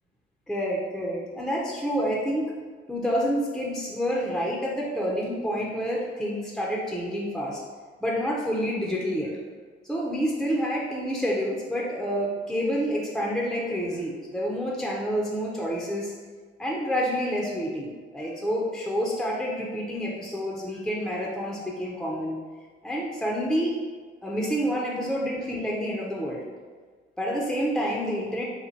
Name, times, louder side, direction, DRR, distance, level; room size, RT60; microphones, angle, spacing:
voice 1, 0.5-2.5 2.9-7.6 8.0-9.4 9.8-16.1 16.6-22.4 22.8-23.8 24.2-26.4 27.2-28.4, equal, ahead, -3 dB, 0.7 m, -28 dB
4.1 x 2.2 x 4.4 m, 1.5 s
cardioid pair, 90°, 20 cm